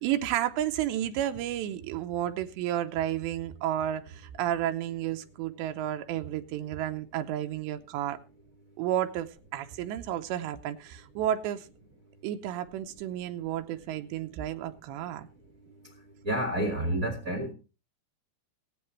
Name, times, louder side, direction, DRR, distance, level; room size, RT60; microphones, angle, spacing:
voice 1, 0.0-8.2 8.8-11.7 12.2-15.3, right 11 dB, 85° right, 3.1 m, -32 dB
voice 2, 16.2-17.5, right 1 dB, 40° right, 1.2 m, -29 dB
21.5 x 8.9 x 3.2 m
omnidirectional pair, 5.0 m